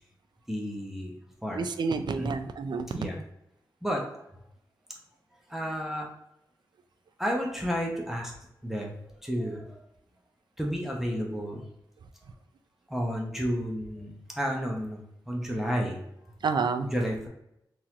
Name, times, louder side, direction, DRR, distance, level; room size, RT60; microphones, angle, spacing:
voice 1, 0.5-1.1 1.4-1.7 2.2-2.3 3.0-3.2 3.8-4.1 5.5-6.1 7.2-8.3 8.6-9.8 10.6-11.7 12.9-16.0 16.9-17.3, equal, 5° right, -1 dB, 0.8 m, -31 dB
voice 2, 1.6-3.1 16.4-16.9, right 4 dB, 65° right, 10 dB, 0.4 m, -29 dB
3.7 x 3.0 x 2.9 m, 0.81 s
cardioid pair, 60°, 8 cm